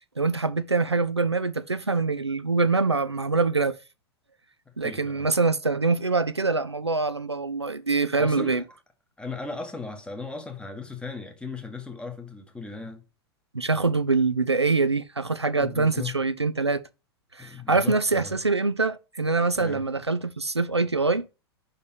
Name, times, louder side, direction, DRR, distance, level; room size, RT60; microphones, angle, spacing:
voice 1, 0.2-3.7 4.8-8.6 13.5-16.8 17.4-21.2, right 3 dB, 90° right, 0.4 m, -24 dB
voice 2, 4.8-5.3 8.2-8.6 9.2-13.0 15.6-16.2 17.4-18.3 19.5-19.8, left 4 dB, 5° left, 1.2 m, -37 dB
5.3 x 4.2 x 4.9 m
figure-of-eight pair, 90°, 14 cm